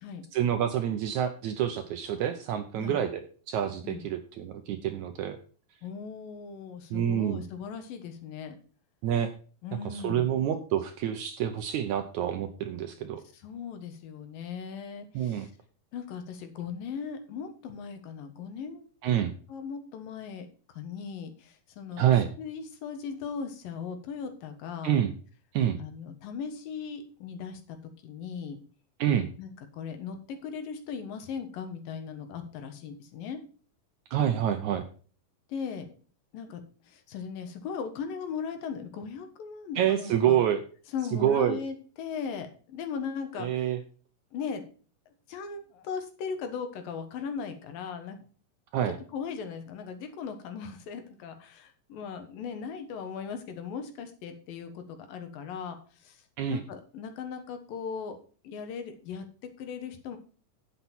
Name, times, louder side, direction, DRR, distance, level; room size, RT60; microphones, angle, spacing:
voice 1, 0.3-3.2 3.5-5.4 6.9-7.4 9.0-9.3 9.9-13.2 15.2-15.5 19.0-19.3 22.0-22.3 24.8-25.1 25.5-25.8 29.0-29.3 34.1-34.8 39.8-40.6 41.1-41.6 43.4-43.8 48.7-49.0 56.4-56.6, right 10 dB, 75° right, 8 dB, 1.8 m, -27 dB
voice 2, 5.8-8.6 9.6-10.3 13.3-15.5 15.9-18.8 19.5-22.1 22.4-25.0 25.8-27.8 28.0-28.6 29.4-33.4 35.5-35.9 36.3-40.4 40.9-43.7 44.3-44.6 45.3-48.3 49.1-56.2 56.5-58.2 58.4-59.3 59.6-60.2, left 6 dB, 75° left, 7 dB, 3.0 m, -38 dB
9.7 x 8.2 x 4.3 m, 0.40 s
omnidirectional pair, 4.1 m